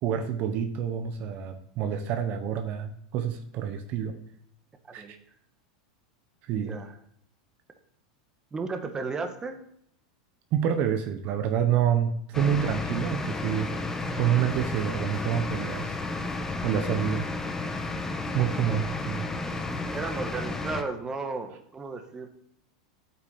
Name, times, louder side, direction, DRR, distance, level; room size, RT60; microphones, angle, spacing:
voice 1, 0.0-4.2 4.9-5.2 6.5-6.8 10.5-13.7 14.2-16.0 16.6-17.3 18.3-19.3, right 9 dB, 50° right, 7 dB, 1.1 m, -27 dB
voice 2, 6.5-6.9 8.5-9.6 18.6-18.9 19.4-19.5 19.9-22.3, right 4 dB, 20° right, 6 dB, 1.5 m, -34 dB
sound 1, 12.3-20.8, left 2 dB, 15° left, 1.2 m, -32 dB
8.8 x 6.8 x 7.2 m, 0.67 s
supercardioid pair, 120°, 4 cm